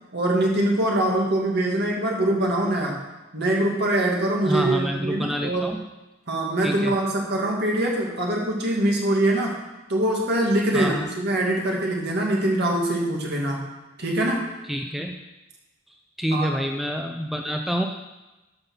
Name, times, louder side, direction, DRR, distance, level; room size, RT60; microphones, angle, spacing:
voice 1, 0.1-3.0 3.3-5.7 6.3-9.6 9.9-13.7 14.0-14.4 16.3-16.5, right 1 dB, 55° right, -1 dB, 2.2 m, -23 dB
voice 2, 4.4-5.8 6.6-6.9 10.7-11.1 14.7-15.1 16.2-17.9, equal, ahead, 3 dB, 0.5 m, -27 dB
12.5 x 5.6 x 5.7 m, 1.0 s
head